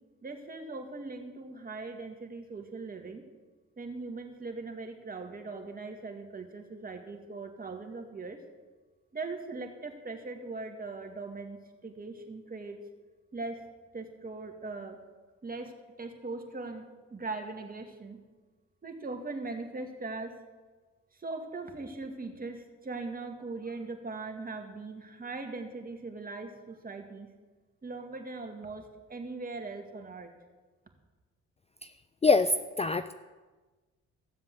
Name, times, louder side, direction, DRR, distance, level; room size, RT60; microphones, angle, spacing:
voice 1, 0.2-3.2 3.8-8.4 9.1-12.8 13.3-13.6 13.9-15.0 15.4-15.7 16.0-18.2 18.8-20.4 21.1-27.3 27.8-30.3, right 3 dB, 30° right, 4 dB, 2.3 m, -40 dB
voice 2, 32.2-33.1, left 3 dB, 20° left, 11 dB, 0.5 m, -24 dB
15.5 x 7.4 x 7.7 m, 1.3 s
cardioid pair, 90°, 30 cm